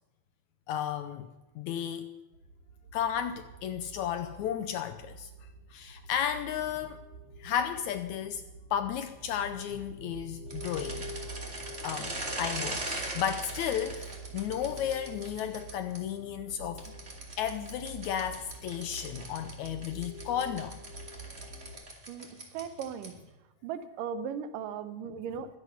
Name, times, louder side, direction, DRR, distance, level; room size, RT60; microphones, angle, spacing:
voice 1, 0.7-1.3 1.6-2.1 2.9-5.3 5.7-7.1 7.4-8.4 8.7-11.0 11.8-16.9 17.4-20.8, left 9 dB, 75° left, 9 dB, 1.8 m, -33 dB
sound 1, 2.3-21.7, right 2 dB, 55° right, 2.2 m, -46 dB
sound 2, 10.5-16.0 16.8-23.3, right 2 dB, 25° right, 1.7 m, -40 dB
voice 2, 22.5-23.1 23.6-25.6, right 7 dB, 80° right, 11 dB, 2.5 m, -37 dB
22.5 x 8.0 x 5.6 m, 1.0 s
omnidirectional pair, 3.8 m